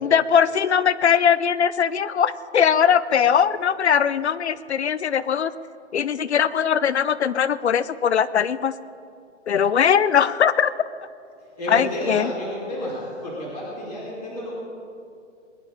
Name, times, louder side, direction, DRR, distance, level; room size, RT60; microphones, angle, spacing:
voice 1, 0.0-5.5 5.9-8.7 9.5-10.7 11.7-12.3, left 8 dB, 60° left, 16 dB, 0.6 m, -20 dB
voice 2, 11.6-14.5, left 1 dB, 5° right, -13 dB, 0.6 m, -30 dB
21.0 x 11.0 x 4.9 m, 2.4 s
hypercardioid pair, 180°, 37 cm